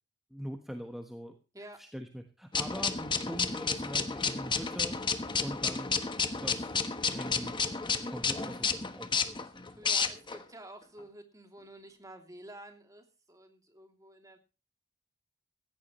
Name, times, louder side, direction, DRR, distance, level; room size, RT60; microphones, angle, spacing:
voice 1, 0.3-1.4 1.8-5.0 5.4-5.9 6.3-6.7 7.1-7.6 8.1-9.5 9.8-9.9, equal, ahead, 4 dB, 1.3 m, -42 dB
sound 1, 2.5-10.4, left 5 dB, 25° left, 1.2 m, -31 dB
voice 2, 9.7-14.4, right 1 dB, 20° right, 4 dB, 2.9 m, -50 dB
17.0 x 14.5 x 3.2 m, 0.32 s
head